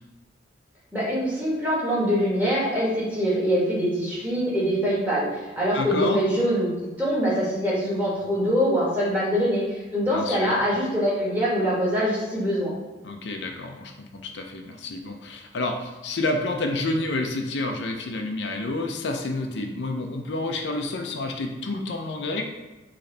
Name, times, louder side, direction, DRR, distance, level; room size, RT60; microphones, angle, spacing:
voice 1, 0.9-6.7 7.0-12.7, equal, 10° right, -7 dB, 1.3 m, -24 dB
voice 2, 5.7-6.2 10.1-10.6 13.0-22.4, left 2 dB, 70° left, 3 dB, 0.5 m, -29 dB
4.1 x 3.1 x 3.8 m, 1.2 s
head